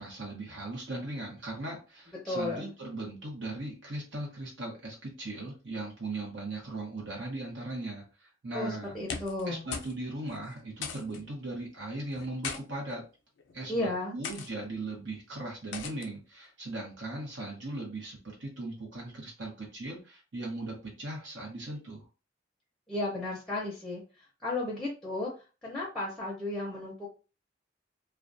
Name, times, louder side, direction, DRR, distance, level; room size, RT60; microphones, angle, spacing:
voice 1, 0.0-8.9 9.5-13.0 13.5-22.0, right 2 dB, 85° right, -2 dB, 0.9 m, -38 dB
voice 2, 2.2-2.7 8.5-9.6 13.7-14.1 22.9-24.0 24.4-25.3 25.6-27.1, left 2 dB, ahead, -3 dB, 0.6 m, -34 dB
sound 1, 8.9-9.5 9.7-10.0 10.3-10.4 10.8-11.2 12.1-12.6 13.4-13.6 14.2-14.5 15.7-16.1, left 6 dB, 80° left, 0.4 m, -38 dB
2.3 x 2.1 x 2.5 m, 0.32 s
head